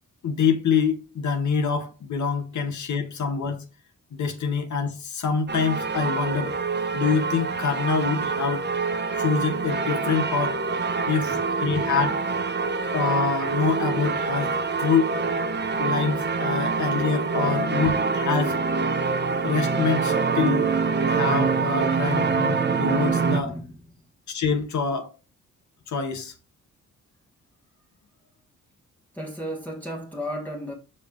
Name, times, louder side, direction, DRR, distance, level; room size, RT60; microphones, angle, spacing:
voice 1, 0.2-3.7 4.1-6.5 6.9-8.6 9.2-10.6 11.1-12.2 12.9-15.1 15.8-18.6 19.4-20.7 21.1-23.6 24.3-25.1 25.9-26.3, left 5 dB, 60° left, 1.2 m, -25 dB
sound 1, 5.5-23.4, right 4 dB, 35° right, 0.9 m, -25 dB
voice 2, 23.4-23.8 29.1-30.7, equal, 5° left, 1.3 m, -34 dB
6.7 x 5.3 x 3.4 m
supercardioid pair, 60°, 32 cm